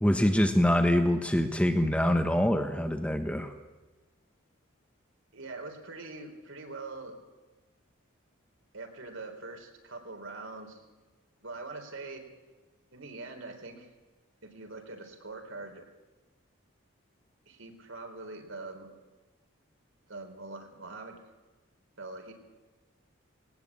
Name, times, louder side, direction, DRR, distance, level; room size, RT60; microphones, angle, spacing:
voice 1, 0.0-3.5, left 1 dB, 5° left, 6 dB, 1.2 m, -25 dB
voice 2, 5.3-7.1 8.7-10.8 11.4-12.2 12.9-13.9 14.4-15.8 17.5-18.9 20.1-21.2 22.0-22.3, right 3 dB, 70° right, 4 dB, 4.2 m, -43 dB
20.0 x 18.5 x 8.6 m, 1.2 s
head